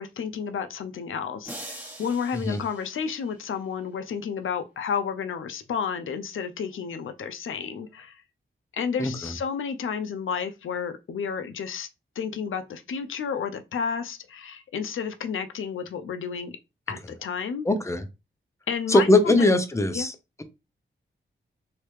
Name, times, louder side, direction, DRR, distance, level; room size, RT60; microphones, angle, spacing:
voice 1, 0.0-8.2 8.7-11.9 12.2-16.5 16.9-17.7 18.7-19.5 19.9-20.1, left 6 dB, 80° left, 0.4 m, -31 dB
sound 1, 1.4-3.7, right 1 dB, 10° right, 1.0 m, -43 dB
voice 2, 9.0-9.3 17.6-18.0 18.9-20.4, left 2 dB, 15° left, 0.5 m, -21 dB
3.2 x 2.7 x 3.1 m
wide cardioid pair, 115°, 20 cm